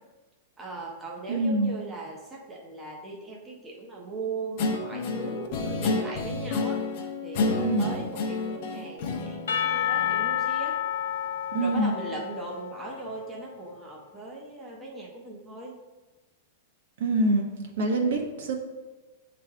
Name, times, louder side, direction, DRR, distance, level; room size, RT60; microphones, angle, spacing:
voice 1, 0.6-6.8 7.2-10.8 11.6-15.8, right 3 dB, 10° right, -2 dB, 0.7 m, -39 dB
voice 2, 1.3-1.7 7.6-7.9 11.5-11.9 17.0-17.5 17.8-18.5, right 2 dB, 70° right, 2 dB, 1.2 m, -25 dB
Guitar, 4.6-10.4, left 3 dB, 45° left, 0.6 m, -30 dB
Percussion / Church bell, 9.5-13.5, left 10 dB, 85° left, 0.5 m, -30 dB
8.7 x 3.3 x 3.5 m, 1.2 s
supercardioid pair, 165°, 0 cm